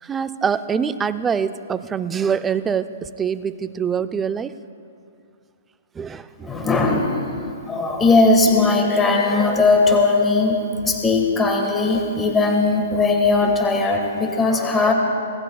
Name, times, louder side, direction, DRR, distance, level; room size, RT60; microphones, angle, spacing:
voice 1, 0.0-4.6 5.9-6.7 13.4-13.5, right 7 dB, 15° right, 12 dB, 0.4 m, -25 dB
voice 2, 6.4-7.2 7.7-14.9, left 3 dB, 15° left, 1 dB, 1.6 m, -18 dB
26.0 x 18.5 x 2.3 m, 2.4 s
hypercardioid pair, 145°, 0 cm